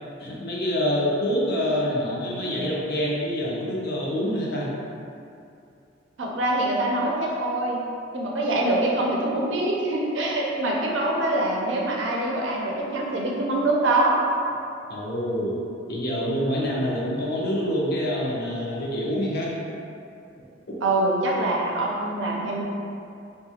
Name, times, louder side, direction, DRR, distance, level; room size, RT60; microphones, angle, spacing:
voice 1, 0.2-4.7 14.9-15.6 15.9-19.5 20.7-20.8, equal, 55° left, -5 dB, 0.5 m, -26 dB
voice 2, 6.2-7.8 8.1-14.1 20.8-22.6, right 2 dB, 70° right, -3 dB, 0.5 m, -24 dB
2.8 x 2.3 x 2.7 m, 2.6 s
head